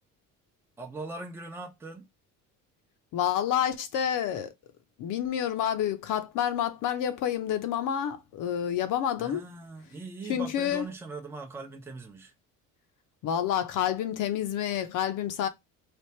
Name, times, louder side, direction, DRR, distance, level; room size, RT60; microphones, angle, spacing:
voice 1, 0.8-2.1 9.2-12.3, right 3 dB, 5° right, 0.6 m, -40 dB
voice 2, 3.1-4.5 5.0-9.4 10.3-10.8 13.2-15.5, left 10 dB, 65° left, 0.8 m, -28 dB
3.4 x 2.5 x 4.3 m
cardioid pair, 120°, 34 cm